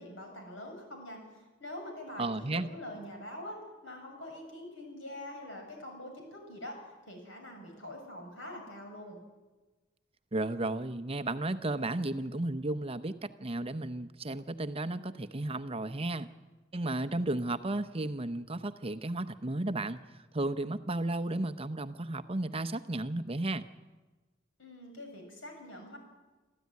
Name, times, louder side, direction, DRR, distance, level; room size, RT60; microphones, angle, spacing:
voice 1, 0.0-3.6 3.8-9.2 24.6-26.0, left 1 dB, 75° left, 3 dB, 6.9 m, -45 dB
voice 2, 2.2-2.7 10.3-16.3 16.7-20.0 20.3-23.7, right 2 dB, 30° right, 10 dB, 0.8 m, -33 dB
26.0 x 14.0 x 9.5 m, 1.2 s
head